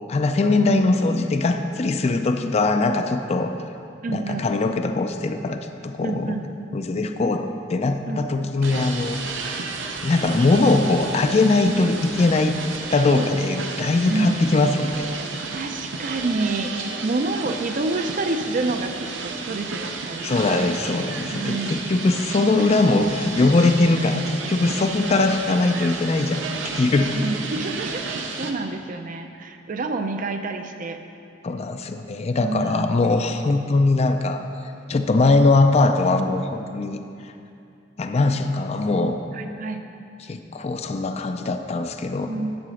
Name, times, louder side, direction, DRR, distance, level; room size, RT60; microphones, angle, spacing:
voice 1, 0.1-3.5 4.1-6.4 6.7-9.2 10.0-12.6 12.9-15.1 20.2-27.2 31.4-34.4 34.9-37.0 38.0-39.2 40.2-42.3, left 3 dB, 35° left, 7 dB, 0.4 m, -21 dB
voice 2, 4.0-4.5 6.0-6.4 8.0-8.2 13.1-13.4 14.1-14.4 15.5-20.6 21.3-21.8 27.1-31.0 32.4-33.4 39.3-39.8 42.3-42.6, right 3 dB, 45° right, 7 dB, 0.5 m, -28 dB
sound 1, 8.6-28.5, right 4 dB, 80° right, 0.7 m, -32 dB
10.5 x 3.9 x 6.3 m, 2.5 s
head